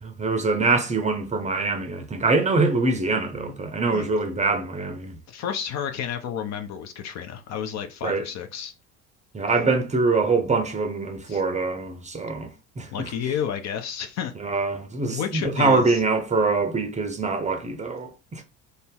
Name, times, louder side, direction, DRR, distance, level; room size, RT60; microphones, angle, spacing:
voice 1, 0.0-5.2 8.0-8.2 9.3-12.5 12.8-13.1 14.4-18.4, right 3 dB, 20° right, 0.6 m, -24 dB
voice 2, 5.3-8.7 11.3-11.4 12.9-14.3 15.1-16.0, left 8 dB, 45° left, 0.5 m, -31 dB
2.6 x 2.0 x 3.7 m
hypercardioid pair, 60°, 40 cm